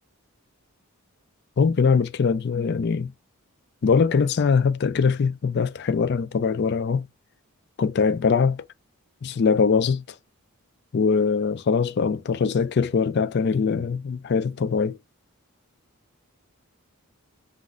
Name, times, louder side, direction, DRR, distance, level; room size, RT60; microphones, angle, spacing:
voice 1, 1.6-3.1 3.8-7.1 7.8-8.6 9.2-10.0 10.9-15.0, left 5 dB, 50° left, 0.3 m, -22 dB
5.9 x 2.5 x 2.5 m
head